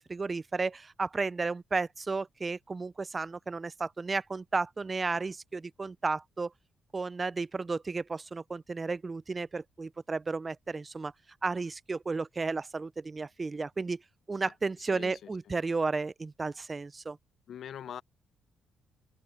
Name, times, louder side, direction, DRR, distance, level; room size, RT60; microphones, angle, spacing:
voice 1, 0.0-6.5 6.9-11.1 11.4-14.0 14.3-17.2, right 4 dB, 30° right, 0.4 m, -33 dB
voice 2, 14.8-15.4 17.5-18.0, left 9 dB, 65° left, 0.5 m, -43 dB
open air
cardioid pair, 90°, 0 cm